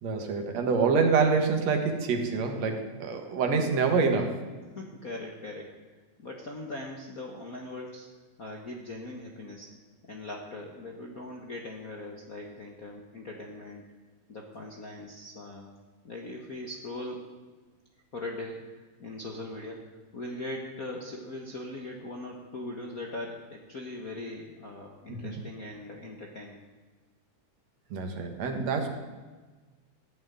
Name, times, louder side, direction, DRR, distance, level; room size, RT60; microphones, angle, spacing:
voice 1, 0.0-4.4 25.1-25.4 27.9-28.9, right 5 dB, 60° right, 4 dB, 2.5 m, -26 dB
voice 2, 4.7-5.7 6.2-8.1 8.4-9.7 10.0-13.9 14.3-15.7 16.0-17.3 18.1-19.8 20.1-26.6, left 2 dB, 75° left, 0 dB, 0.8 m, -40 dB
15.0 x 7.4 x 9.5 m, 1.3 s
omnidirectional pair, 3.8 m